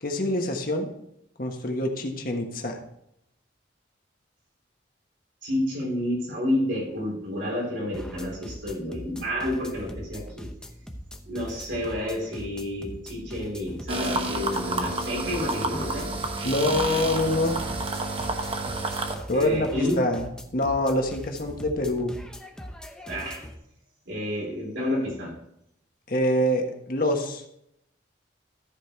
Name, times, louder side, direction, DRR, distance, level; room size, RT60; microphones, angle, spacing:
voice 1, 0.0-0.9 1.4-2.8 16.4-17.6 19.3-22.2 26.1-27.4, left 1 dB, 50° left, 3 dB, 1.4 m, -25 dB
voice 2, 5.4-10.5 11.2-16.1 19.3-20.1 23.1-23.5 24.1-25.3, left 1 dB, 85° right, -3 dB, 3.8 m, -30 dB
sound 1, 7.9-23.5, equal, 5° left, 0.7 m, -42 dB
sound 2, 13.9-19.2, right 2 dB, 30° right, 1.0 m, -29 dB
13.0 x 5.1 x 4.5 m, 0.78 s
head